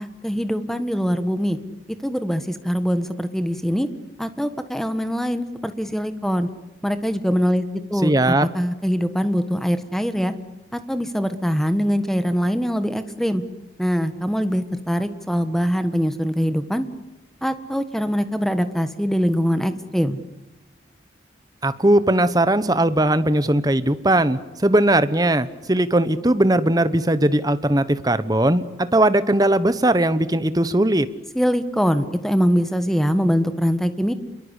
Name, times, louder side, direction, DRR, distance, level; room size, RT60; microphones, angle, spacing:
voice 1, 0.0-1.6 2.0-3.9 4.2-6.5 6.8-10.3 10.7-13.4 13.8-16.9 17.4-20.2 31.3-34.1, equal, ahead, 10 dB, 1.4 m, -23 dB
voice 2, 8.0-8.4 21.6-31.1, right 1 dB, 20° right, 13 dB, 1.1 m, -19 dB
29.0 x 22.5 x 8.3 m, 0.99 s
head